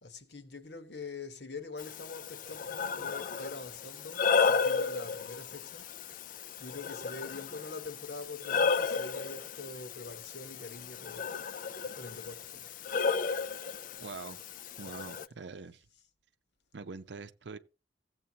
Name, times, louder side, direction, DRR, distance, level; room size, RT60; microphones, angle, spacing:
voice 1, 0.0-5.9 6.6-11.3 11.9-12.7, left 3 dB, 70° left, 1.3 m, -45 dB
Breathing, 1.8-15.3, left 5 dB, 50° left, 0.4 m, -33 dB
voice 2, 14.0-14.4 14.8-15.9 16.7-17.6, right 4 dB, 80° right, 0.6 m, -44 dB
16.0 x 7.8 x 2.9 m
head